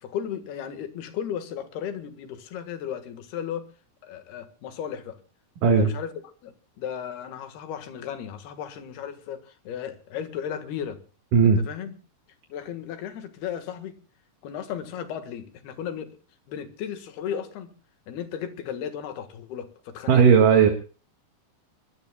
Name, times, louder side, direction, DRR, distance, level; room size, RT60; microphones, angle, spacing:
voice 1, 0.0-3.7 4.0-5.2 5.6-6.1 6.4-11.0 11.7-11.9 12.5-14.0 14.4-16.1 16.5-17.7 18.1-20.3, left 9 dB, 75° left, 8 dB, 3.6 m, -35 dB
voice 2, 20.1-20.7, right 6 dB, 60° right, 4 dB, 3.1 m, -16 dB
26.0 x 21.0 x 2.3 m, 0.38 s
omnidirectional pair, 4.7 m